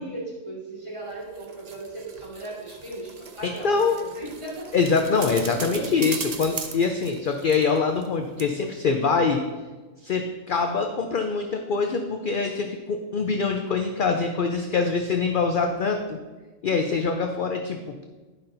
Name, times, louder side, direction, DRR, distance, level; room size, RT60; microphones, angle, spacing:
voice 1, 0.0-4.7 5.1-6.1, right 2 dB, 25° right, -7 dB, 2.7 m, -37 dB
sound 1, 1.1-8.1 8.4-8.5, right 5 dB, 45° right, 0.5 m, -39 dB
voice 2, 3.4-4.0 4.7-9.4 10.0-16.2 16.6-18.1, left 4 dB, 55° left, 5 dB, 0.6 m, -24 dB
10.5 x 5.6 x 3.9 m, 1.3 s
omnidirectional pair, 1.3 m